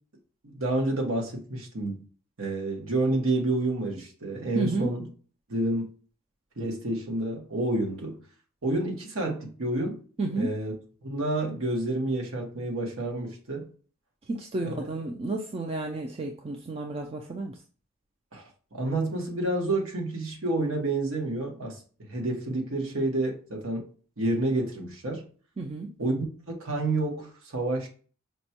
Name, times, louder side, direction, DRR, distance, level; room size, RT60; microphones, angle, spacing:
voice 1, 0.4-2.0 2.4-5.1 5.5-5.9 6.6-8.2 8.6-10.0 10.3-10.7 11.0-13.7 14.6-14.9 18.3-18.4 18.7-21.8 22.1-23.9 24.2-25.2 26.0-27.9, right 2 dB, 90° right, 1.1 m, -29 dB
voice 2, 4.6-4.9 10.2-10.5 14.3-17.5 25.6-25.9, right 2 dB, 30° right, 0.3 m, -31 dB
5.1 x 2.2 x 2.8 m
head